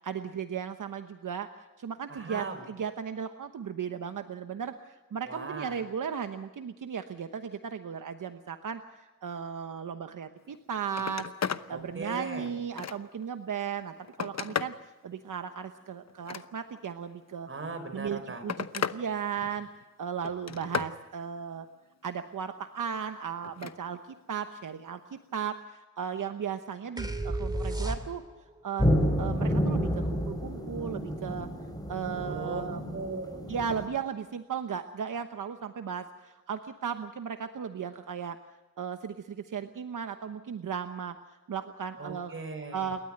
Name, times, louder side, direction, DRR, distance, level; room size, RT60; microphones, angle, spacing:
voice 1, 0.0-11.3 11.7-17.5 17.9-19.7 20.0-21.7 22.0-24.0 24.3-28.2 28.6-28.9 29.2-31.5 31.9-32.8 33.5-38.4 38.8-42.3 42.7-43.0, right 7 dB, 80° right, 8 dB, 1.0 m, -36 dB
voice 2, 2.1-2.6 5.3-5.8 11.7-12.5 17.5-18.4 32.2-32.6 32.9-33.4 42.0-42.9, right 3 dB, 40° right, 6 dB, 5.3 m, -38 dB
Telephone, 10.4-10.6 10.9-11.7 12.2-13.2 13.8-14.8 16.1-16.9 17.9-19.0 19.4-19.8 20.2-21.0 23.4-23.8 25.2-25.3, left 7 dB, 55° left, 0.9 m, -35 dB
sound 1, 27.0-28.5, right 1 dB, 15° right, 2.7 m, -32 dB
sound 2, 28.8-33.8, equal, 10° left, 5.4 m, -29 dB
29.0 x 13.0 x 7.9 m, 1.2 s
wide cardioid pair, 95°, 31 cm